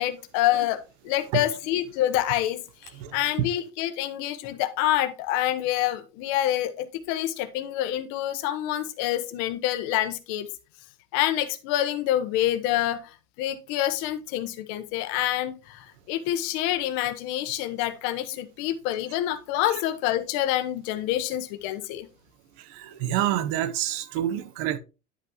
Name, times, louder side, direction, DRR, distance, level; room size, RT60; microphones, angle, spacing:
voice 1, 0.0-10.5 11.1-22.1, left 13 dB, 70° left, 1.1 m, -27 dB
voice 2, 22.7-24.8, right 12 dB, 75° right, 0.9 m, -27 dB
10.0 x 5.6 x 3.0 m
cardioid pair, 150°, 21 cm